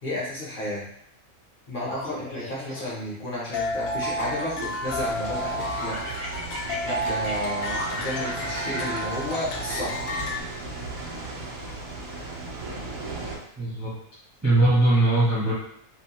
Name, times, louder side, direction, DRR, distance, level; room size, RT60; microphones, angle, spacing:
voice 1, 0.0-0.8 1.7-6.0 6.8-10.0, left 1 dB, 50° left, -7 dB, 0.8 m, -32 dB
Laughter, 1.8-3.1 3.7-4.8 5.2-10.3, left 1 dB, 60° right, 1.1 m, -38 dB
sound 1, 3.5-10.4, equal, 90° left, 1.0 m, -31 dB
sound 2, 4.8-13.4, right 3 dB, 80° right, 1.1 m, -37 dB
voice 2, 13.6-13.9 14.4-15.5, right 2 dB, 15° right, -8 dB, 0.6 m, -20 dB
2.9 x 2.0 x 2.8 m, 0.71 s
omnidirectional pair, 1.4 m